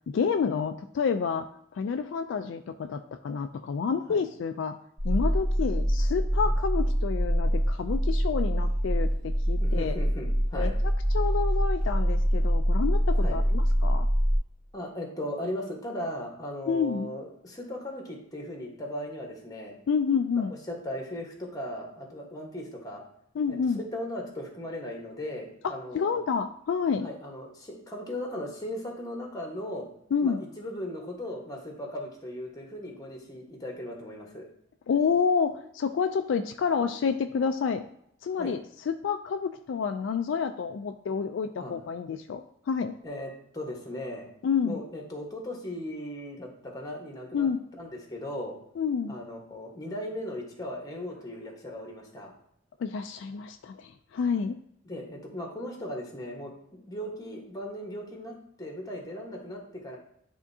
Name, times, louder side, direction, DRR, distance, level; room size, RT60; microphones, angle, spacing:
voice 1, 0.1-1.5 1.7-4.7 5.0-10.0 10.5-14.1 16.7-17.1 19.9-20.5 23.4-23.8 25.6-27.1 30.1-30.4 34.9-37.8 38.2-42.9 44.4-44.8 47.3-47.6 48.8-49.2 52.8-54.6, left 6 dB, 65° left, 8 dB, 0.3 m, -29 dB
sound 1, 5.0-14.4, equal, 45° right, 1.2 m, -25 dB
voice 2, 9.6-10.7 13.2-13.4 14.7-19.8 20.4-23.0 23.5-26.1 27.0-29.9 30.2-34.5 38.4-38.5 41.6-41.7 43.0-44.3 44.6-47.5 47.7-48.6 49.1-52.3 54.2-54.3 54.8-60.0, left 1 dB, 20° left, 1 dB, 1.2 m, -37 dB
10.5 x 3.6 x 2.7 m, 0.71 s
head